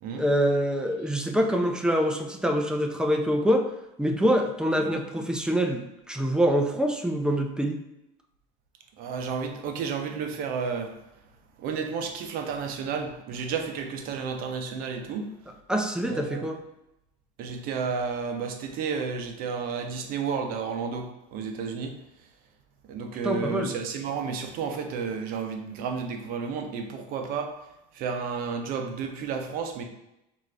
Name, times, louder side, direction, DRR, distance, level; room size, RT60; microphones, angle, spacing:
voice 1, 0.2-3.6 4.0-7.8 15.7-16.6 23.2-23.7, equal, 5° right, 3 dB, 0.5 m, -25 dB
voice 2, 9.0-10.9 11.6-15.3 16.1-16.5 17.4-21.9 22.9-27.5 27.9-29.8, right 5 dB, 55° right, 5 dB, 0.7 m, -32 dB
4.7 x 2.6 x 3.3 m, 0.88 s
supercardioid pair, 125°, 18 cm